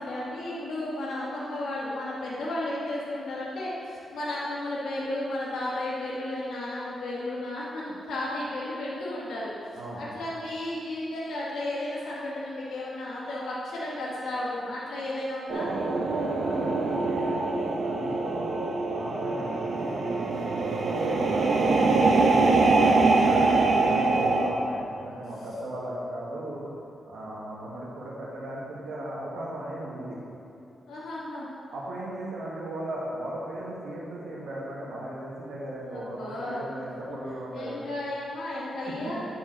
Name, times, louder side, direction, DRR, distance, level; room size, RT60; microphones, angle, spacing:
voice 1, 0.0-9.5 10.0-15.7 18.0-18.2 21.0-21.4 30.9-31.5 35.9-36.6 37.5-39.3, left 1 dB, 90° left, -6 dB, 1.5 m, -33 dB
sound 1, 15.5-24.5, right 3 dB, 60° right, 0.8 m, -24 dB
voice 2, 16.2-20.4 20.8-22.9 23.2-26.7 27.1-30.2 31.7-37.8 38.8-39.1, right 1 dB, 85° right, -5 dB, 1.7 m, -37 dB
10.5 x 6.0 x 4.0 m, 2.7 s
cardioid pair, 100°, 0 cm